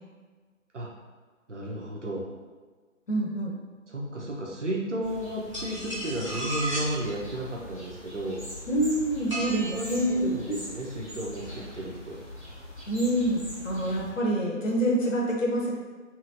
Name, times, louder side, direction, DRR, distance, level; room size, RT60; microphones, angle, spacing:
voice 1, 1.5-2.3 3.9-8.5 9.6-12.2, right 1 dB, 60° right, -2 dB, 0.8 m, -33 dB
voice 2, 3.1-3.5 8.7-10.3 12.9-15.7, right 1 dB, 70° left, -2 dB, 0.8 m, -26 dB
sound 1, 5.0-14.1, left 1 dB, 25° left, 0.8 m, -42 dB
sound 2, 5.5-7.0 9.3-10.1, right 1 dB, 25° right, 0.6 m, -34 dB
2.9 x 2.7 x 2.6 m, 1.4 s
figure-of-eight pair, 155°, 40 cm